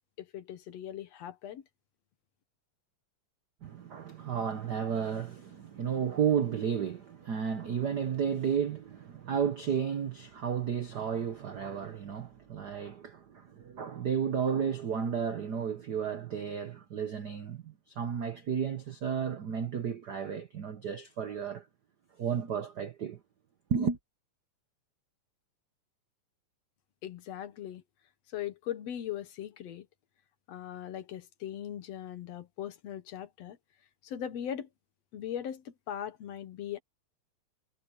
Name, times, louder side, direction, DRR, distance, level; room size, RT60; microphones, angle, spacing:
voice 1, 0.2-1.6 27.0-27.8 28.3-29.9 30.5-33.6 34.0-34.7 35.1-36.8, left 10 dB, 65° left, 2.2 m, -39 dB
voice 2, 3.6-21.7 22.2-23.2 23.7-24.0, right 7 dB, 75° right, 0.9 m, -32 dB
omnidirectional pair, 3.3 m